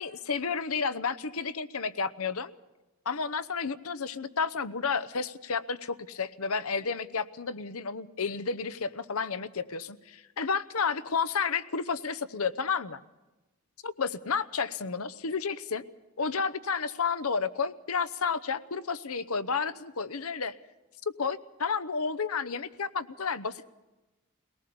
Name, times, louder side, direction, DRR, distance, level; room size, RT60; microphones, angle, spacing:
voice 1, 0.0-2.5 3.1-13.0 13.8-15.8 16.2-20.6 21.2-23.7, left 5 dB, 75° left, 14 dB, 0.9 m, -31 dB
21.5 x 18.5 x 6.9 m, 1.1 s
head